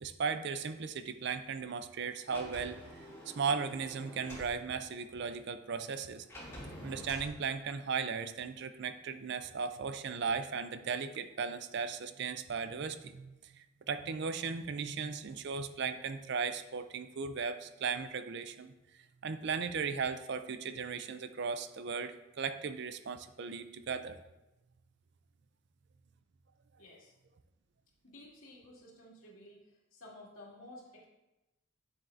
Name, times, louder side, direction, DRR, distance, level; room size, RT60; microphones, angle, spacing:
voice 1, 0.0-6.3 6.8-18.7 19.2-24.2, right 5 dB, 55° right, 10 dB, 0.4 m, -37 dB
Sliding door, 2.2-4.5 6.3-7.3, equal, 10° left, 2.5 m, -47 dB
voice 2, 26.8-27.1 28.0-29.6 29.9-31.0, left 1 dB, 80° left, -4 dB, 2.3 m, -53 dB
9.1 x 7.3 x 2.6 m, 0.99 s
head